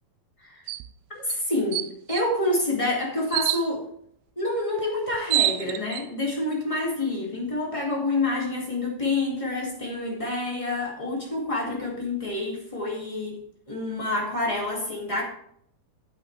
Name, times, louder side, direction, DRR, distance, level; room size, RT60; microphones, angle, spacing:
sound 1, 0.7-0.9 1.3-1.4 1.7-2.3 3.3-3.6 4.8-4.9 5.1-6.0, right 15 dB, 85° right, 2.5 m, -26 dB
voice 1, 1.1-3.8 4.3-13.4 13.7-15.2, left 2 dB, 20° left, -2 dB, 0.9 m, -28 dB
10.5 x 8.8 x 3.3 m, 0.67 s
omnidirectional pair, 4.6 m